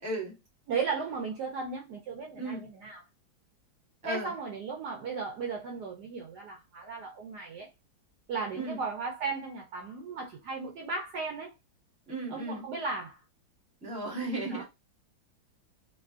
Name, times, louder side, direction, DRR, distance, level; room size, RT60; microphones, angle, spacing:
voice 1, 0.0-0.3 2.4-2.7 4.0-4.3 8.5-8.8 12.1-12.6 13.8-14.6, right 2 dB, 5° right, 0.9 m, -35 dB
voice 2, 0.7-3.0 4.0-7.7 8.3-11.5 12.3-13.2 14.5-14.6, right 4 dB, 65° right, 1.1 m, -36 dB
3.6 x 2.3 x 2.5 m
omnidirectional pair, 2.2 m